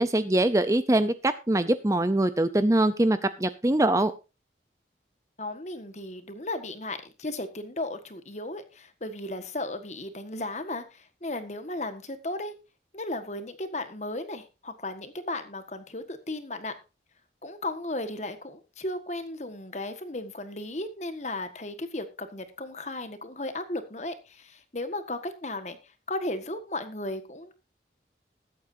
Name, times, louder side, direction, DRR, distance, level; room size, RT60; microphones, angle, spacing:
voice 1, 0.0-4.1, right 1 dB, 15° right, 13 dB, 0.5 m, -23 dB
voice 2, 5.4-12.5 12.9-16.7 17.4-25.8 26.1-27.5, left 2 dB, 40° left, 9 dB, 1.5 m, -35 dB
21.0 x 8.6 x 2.7 m, 0.29 s
head